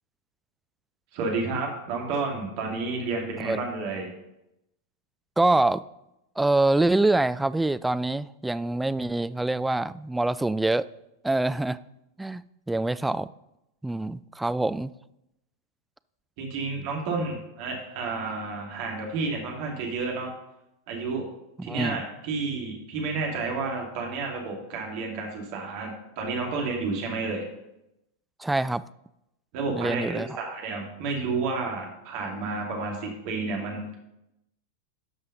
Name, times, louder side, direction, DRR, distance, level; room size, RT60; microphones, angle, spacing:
voice 1, 1.1-4.1 16.4-20.3 20.9-21.3 21.6-27.5 29.5-34.0, right 3 dB, 45° right, 0 dB, 2.6 m, -31 dB
voice 2, 5.4-5.8 6.4-10.9 11.2-11.8 12.2-12.4 12.7-13.3 13.8-14.9 21.6-22.0 28.4-28.8 29.8-30.4, right 2 dB, 5° right, 15 dB, 0.3 m, -25 dB
12.0 x 5.5 x 5.3 m, 0.86 s
figure-of-eight pair, 90°, 0 cm